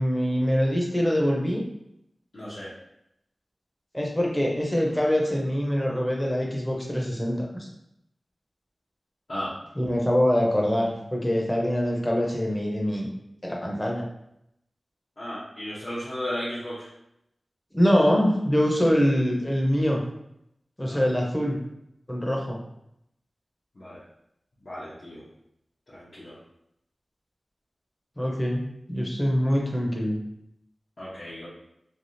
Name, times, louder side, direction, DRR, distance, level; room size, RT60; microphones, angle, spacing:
voice 1, 0.0-1.6 3.9-7.7 9.8-13.1 13.4-14.0 17.7-20.0 20.8-21.6 22.1-22.6 28.2-30.2, equal, 15° left, -1 dB, 0.7 m, -24 dB
voice 2, 2.3-2.7 9.3-9.5 15.2-16.9 20.9-21.1 23.7-24.0 24.6-25.2 25.9-26.4 31.0-31.5, equal, 65° left, -10 dB, 0.8 m, -35 dB
3.3 x 2.3 x 2.7 m, 0.79 s
wide cardioid pair, 75°, 0 cm